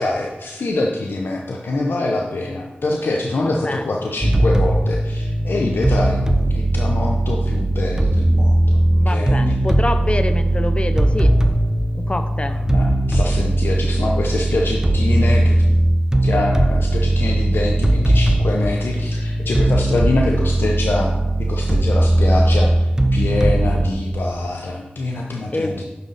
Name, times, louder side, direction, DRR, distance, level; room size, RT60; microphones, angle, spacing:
voice 1, 0.0-6.2 6.5-8.8 9.1-9.4 12.7-15.6 16.2-21.1 21.5-25.7, left 2 dB, 85° left, 0 dB, 0.8 m, -24 dB
voice 2, 3.4-4.0 8.9-11.4 11.9-12.6 25.5-25.8, left 2 dB, 30° left, 9 dB, 0.7 m, -26 dB
sound 1, 4.2-23.9, right 1 dB, 20° right, 0.9 m, -18 dB
9.7 x 6.5 x 4.1 m, 1.0 s
wide cardioid pair, 55°, 4 cm